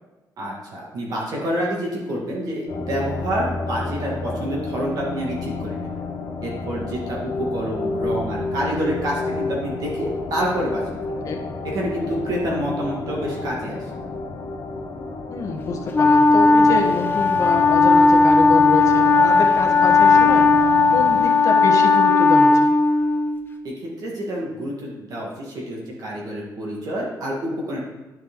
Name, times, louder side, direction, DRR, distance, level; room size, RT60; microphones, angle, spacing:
voice 1, 0.4-5.9 6.4-11.2 11.6-13.8 23.6-27.8, equal, 60° right, -4 dB, 1.7 m, -28 dB
sound 1, 2.7-21.2, left 3 dB, 90° left, 1.4 m, -31 dB
voice 2, 15.3-20.5 20.9-22.7, left 4 dB, 50° left, 0 dB, 1.2 m, -27 dB
Wind instrument woodwind instrument, 15.9-23.5, left 3 dB, 30° left, 0.5 m, -16 dB
10.5 x 4.7 x 3.8 m, 1.1 s
wide cardioid pair, 180°, 7 cm